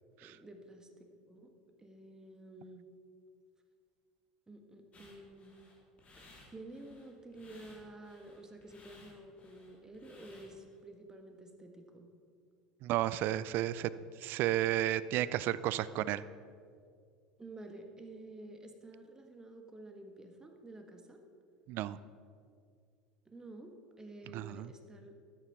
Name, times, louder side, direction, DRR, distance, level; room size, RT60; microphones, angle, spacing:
voice 1, 0.2-1.5 1.8-2.8 4.5-5.6 6.1-12.1 17.4-21.2 23.2-25.1, right 2 dB, 15° right, 4 dB, 1.5 m, -51 dB
sound 1, 4.9-10.8, left 2 dB, 30° left, 3.0 m, -60 dB
voice 2, 12.8-13.9 14.2-16.2 21.7-22.0 24.3-24.7, right 13 dB, 55° right, 16 dB, 0.4 m, -32 dB
12.5 x 8.3 x 4.6 m, 2.2 s
hypercardioid pair, 80°, 4 cm